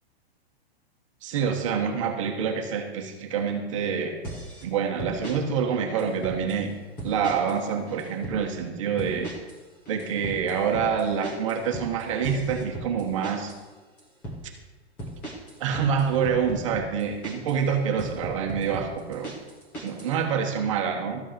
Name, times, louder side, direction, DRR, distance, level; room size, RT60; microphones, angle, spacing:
voice 1, 1.2-4.2 4.6-6.7 7.0-9.3 9.9-13.5 15.6-19.3 19.8-21.2, right 7 dB, 30° right, 2 dB, 1.2 m, -26 dB
sound 1, 4.2-4.7 5.0-5.4 6.0-6.6 7.0-7.6 7.9-8.4 9.0-9.6 9.8-13.6 14.0-14.4 15.0-17.6 18.0-20.1, right 1 dB, 5° left, 0.5 m, -37 dB
13.0 x 8.7 x 6.6 m, 1.3 s
hypercardioid pair, 180°, 32 cm